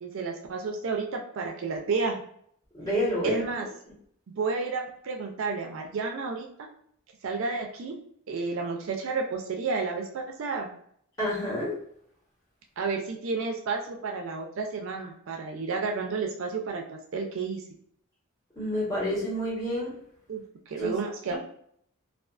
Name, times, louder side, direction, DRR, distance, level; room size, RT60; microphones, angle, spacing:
voice 1, 0.0-2.2 3.2-3.7 4.3-6.7 7.2-8.0 8.3-10.7 12.8-17.6 20.3-21.4, right 4 dB, 65° right, 2 dB, 0.4 m, -31 dB
voice 2, 2.7-3.4 11.2-11.7 18.6-19.9 20.8-20.9 21.3-21.4, equal, 15° left, -7 dB, 1.0 m, -28 dB
2.3 x 2.3 x 2.4 m, 0.65 s
head